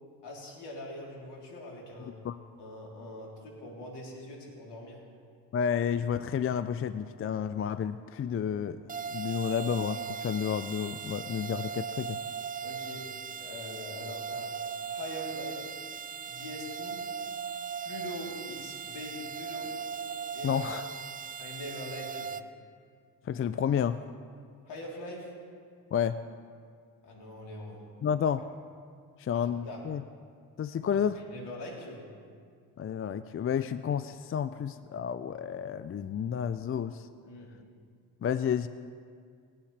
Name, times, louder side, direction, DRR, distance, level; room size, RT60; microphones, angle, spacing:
voice 1, 0.2-2.2 2.6-5.0 12.6-14.6 14.9-15.7 16.3-17.0 17.8-19.8 20.3-20.5 21.4-22.4 24.6-25.4 27.0-27.9 29.3-29.9 30.9-32.1 37.2-37.6, left 1 dB, 70° left, -2 dB, 3.7 m, -43 dB
voice 2, 5.5-8.8 9.1-12.2 20.4-20.9 23.3-24.0 25.9-26.2 28.0-28.4 29.2-30.0 30.6-31.2 32.8-37.1 38.2-38.7, left 8 dB, 30° left, 12 dB, 0.5 m, -30 dB
sound 1, 8.9-22.4, right 7 dB, 20° right, 0.5 m, -38 dB
20.5 x 8.7 x 3.4 m, 2.1 s
hypercardioid pair, 55°, 43 cm